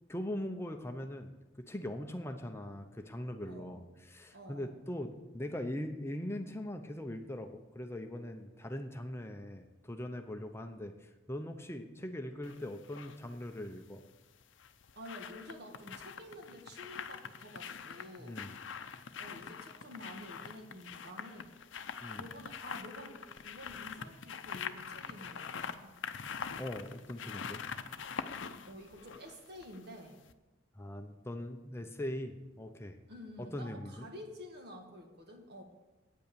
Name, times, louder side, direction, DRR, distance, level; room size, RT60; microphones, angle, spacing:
voice 1, 0.1-1.3 1.7-3.8 4.1-14.0 18.2-18.6 22.0-22.3 26.6-27.6 30.7-33.0 33.4-34.1, left 1 dB, 15° left, 5 dB, 0.6 m, -41 dB
voice 2, 3.4-3.9 4.3-4.7 14.9-18.4 19.2-21.5 22.2-25.9 28.7-30.2 33.1-35.6, left 1 dB, 55° right, 3 dB, 1.7 m, -50 dB
sound 1, 12.4-13.2 14.4-29.9 30.3-30.4, left 6 dB, 75° left, 0.6 m, -44 dB
9.1 x 8.3 x 6.8 m, 1.1 s
head